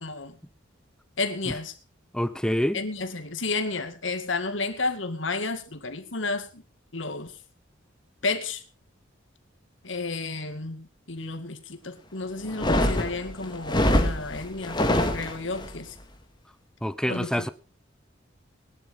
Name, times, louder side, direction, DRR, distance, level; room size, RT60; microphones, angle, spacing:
voice 1, 0.0-0.4 1.2-1.7 2.7-6.6 6.9-7.3 8.2-8.6 9.8-16.0 17.1-17.5, left 3 dB, 70° left, 2.2 m, -32 dB
voice 2, 2.1-2.8 16.8-17.5, equal, 5° left, 0.6 m, -26 dB
sound 1, 12.5-15.7, left 1 dB, 25° left, 2.0 m, -24 dB
20.5 x 12.0 x 3.7 m
head